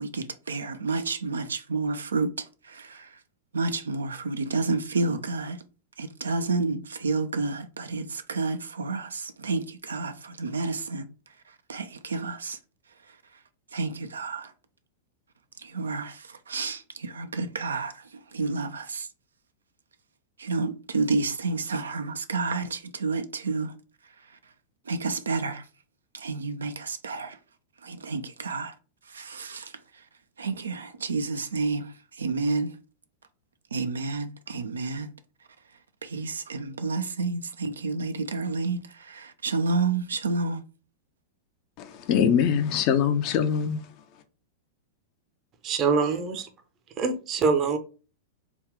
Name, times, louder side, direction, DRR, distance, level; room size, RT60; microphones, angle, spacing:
voice 1, 0.0-3.2 3.5-5.6 6.0-11.1 11.7-12.6 13.7-14.5 15.6-19.1 20.4-23.7 24.9-25.6 26.1-27.4 27.8-28.7 29.1-29.7 30.4-32.8 33.7-35.1 36.0-40.6, right 3 dB, 70° right, 0.4 m, -30 dB
voice 2, 41.8-43.9, left 8 dB, 40° left, 0.5 m, -23 dB
voice 3, 45.6-46.5 47.0-47.8, right 5 dB, 30° right, 0.6 m, -24 dB
3.4 x 2.3 x 3.4 m
figure-of-eight pair, 95°, 0 cm